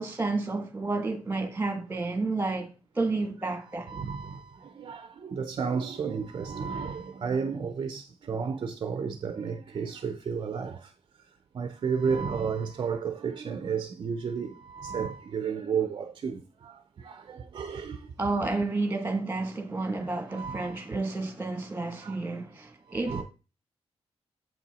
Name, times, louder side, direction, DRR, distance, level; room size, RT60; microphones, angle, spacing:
voice 1, 0.0-4.0 18.2-23.2, right 3 dB, 20° right, 1.5 m, -31 dB
voice 2, 3.9-10.9 11.5-18.6 20.3-20.8 22.0-22.2 22.9-23.2, right 6 dB, 45° right, 0.5 m, -33 dB
7.7 x 5.8 x 4.0 m
wide cardioid pair, 170°, 11 cm